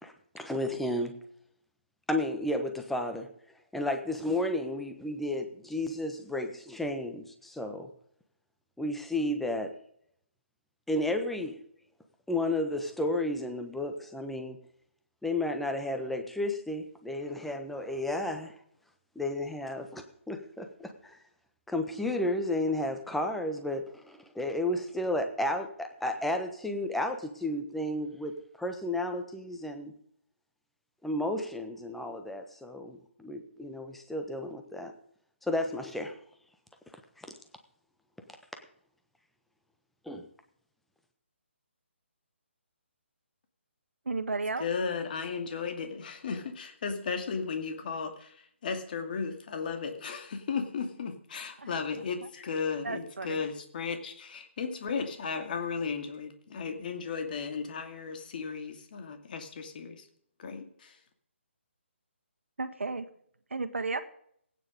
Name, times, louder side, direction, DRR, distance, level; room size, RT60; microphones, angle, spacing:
voice 1, 0.0-1.1 2.1-3.3 3.7-7.9 8.8-9.7 10.9-11.6 12.3-14.6 15.2-18.6 19.1-21.2 21.7-28.3 28.6-29.9 31.0-34.9 35.4-36.1 40.1-40.2, left 1 dB, ahead, 5 dB, 1.2 m, -32 dB
voice 2, 44.0-44.7 51.6-51.7 52.8-53.5 62.6-63.1 63.5-64.0, right 3 dB, 75° right, 11 dB, 1.5 m, -33 dB
voice 3, 44.6-60.1 60.4-61.0, left 5 dB, 45° left, 6 dB, 2.5 m, -35 dB
16.5 x 9.4 x 5.2 m, 0.67 s
figure-of-eight pair, 145°, 7 cm